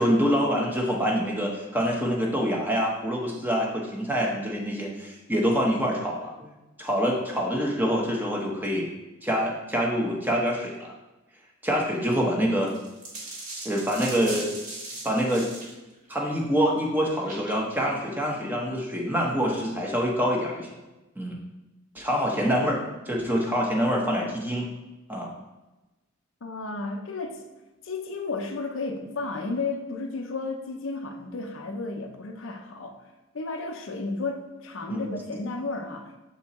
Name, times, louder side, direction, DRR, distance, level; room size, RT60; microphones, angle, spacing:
voice 1, 0.0-6.5 6.8-8.9 9.2-10.9 11.6-12.7 13.6-14.5 15.0-15.5 16.1-20.8 21.2-21.4 21.9-24.7 25.1-25.3 34.9-35.1, equal, 10° right, -1 dB, 0.9 m, -26 dB
sound 1, 12.6-15.8 17.2-17.8, right 2 dB, 35° right, 1.5 m, -39 dB
voice 2, 26.4-27.5 27.8-33.0 33.3-36.1, left 3 dB, 60° left, 4 dB, 0.6 m, -33 dB
6.9 x 4.4 x 4.2 m, 1.1 s
head